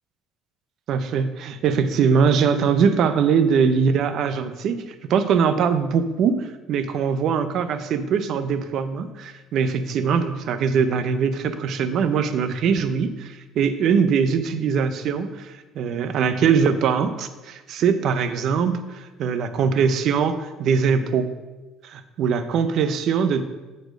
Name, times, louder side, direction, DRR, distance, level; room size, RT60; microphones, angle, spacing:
voice 1, 0.9-4.8 5.1-21.3 21.8-23.4, right 6 dB, 50° right, 10 dB, 0.6 m, -22 dB
8.0 x 4.3 x 6.4 m, 1.2 s
cardioid pair, 145°, 0 cm